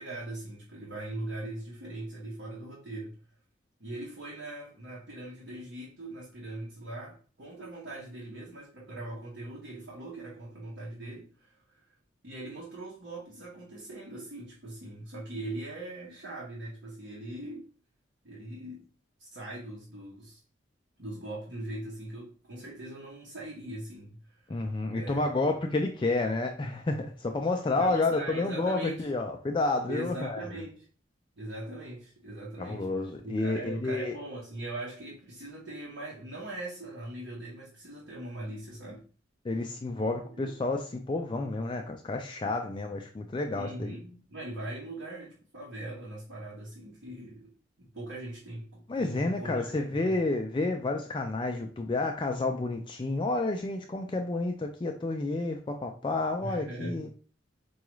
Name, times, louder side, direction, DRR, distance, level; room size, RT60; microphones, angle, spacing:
voice 1, 0.0-3.2 3.8-11.9 12.2-17.7 18.2-18.9 19.2-20.4 21.0-25.4 27.8-29.1 29.9-30.9 31.4-32.9 33.2-39.0 40.4-40.5 43.5-50.2 56.4-57.1, right 1 dB, 75° right, 1.0 m, -41 dB
voice 2, 24.5-30.4 32.6-34.1 39.4-43.9 48.9-57.1, left 2 dB, 25° left, 0.3 m, -30 dB
4.7 x 2.3 x 3.0 m
head